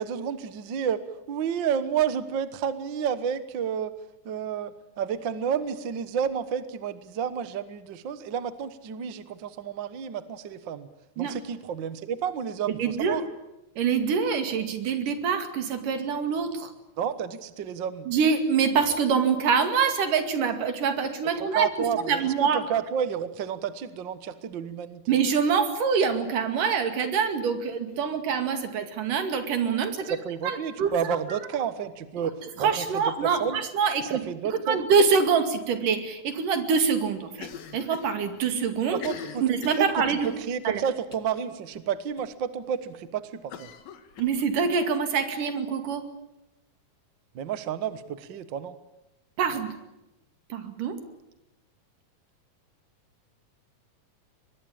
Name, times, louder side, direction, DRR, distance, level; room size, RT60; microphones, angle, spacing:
voice 1, 0.0-3.9 4.2-10.9 11.2-13.2 17.0-18.1 21.5-25.2 30.0-33.6 34.0-34.8 38.9-39.4 39.8-43.7 47.3-48.8, right 8 dB, 55° right, 13 dB, 1.3 m, -31 dB
voice 2, 12.8-13.2 13.8-16.7 18.1-21.7 22.1-22.6 25.1-30.2 30.4-31.2 32.6-34.2 34.6-39.0 39.4-40.3 40.7-40.8 44.2-46.0 49.4-49.7 50.5-51.0, right 6 dB, 70° right, 8 dB, 3.9 m, -25 dB
Cough, 37.3-38.1 38.4-38.5 38.9-40.5 41.1-41.4 41.7-41.8 42.2-42.3 43.5-44.7, left 8 dB, 90° left, 3.4 m, -41 dB
24.0 x 21.0 x 8.8 m, 0.93 s
omnidirectional pair, 3.9 m